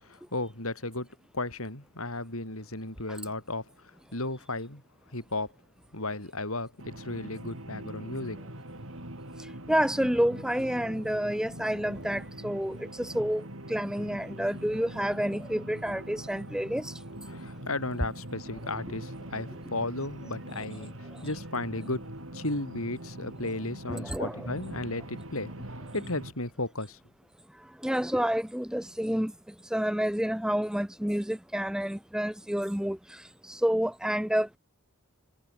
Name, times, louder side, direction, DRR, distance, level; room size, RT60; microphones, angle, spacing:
voice 1, 0.0-1.1 1.3-4.8 5.1-5.5 5.9-8.4 17.3-25.5 25.9-27.0, left 2 dB, 80° left, 7.4 m, -35 dB
sound 1, 6.8-26.3, right 1 dB, 70° right, 5.4 m, -43 dB
voice 2, 9.7-16.9 23.9-24.5 27.8-29.3 29.7-34.6, equal, 5° right, 0.6 m, -29 dB
head